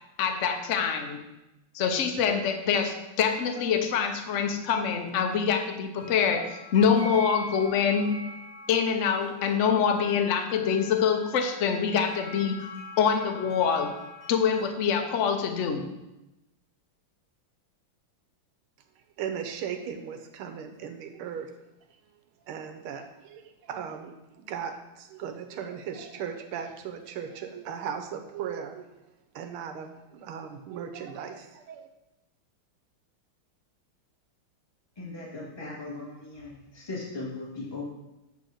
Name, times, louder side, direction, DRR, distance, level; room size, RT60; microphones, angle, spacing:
voice 1, 0.2-1.2 1.7-8.2 8.7-12.7 13.0-13.9 14.3-15.9, left 6 dB, 70° left, 5 dB, 0.6 m, -25 dB
sound 1, 5.9-14.6, left 1 dB, 45° left, 3.7 m, -44 dB
voice 2, 19.2-21.5 22.5-28.9 29.3-31.9, right 7 dB, 85° right, 6 dB, 1.7 m, -37 dB
voice 3, 35.0-37.8, left 3 dB, 10° left, -5 dB, 1.9 m, -38 dB
8.4 x 3.4 x 6.5 m, 0.96 s
omnidirectional pair, 2.3 m